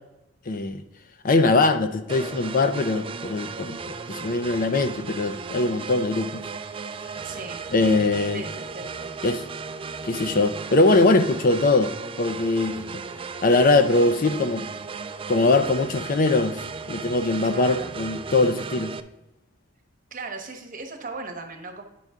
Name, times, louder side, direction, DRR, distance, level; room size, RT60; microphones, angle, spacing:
voice 1, 0.5-0.8 1.2-3.8 4.1-6.4 7.7-8.4 9.2-9.4 10.0-13.0 13.4-14.6 15.3-16.6 16.9-18.9, left 3 dB, 40° left, 0.5 m, -21 dB
sound 1, 2.1-19.0, right 5 dB, 25° right, 0.3 m, -36 dB
voice 2, 7.2-7.6 8.3-9.2 17.4-17.9 20.1-21.8, right 3 dB, 40° right, 1.1 m, -37 dB
9.1 x 5.6 x 3.6 m
head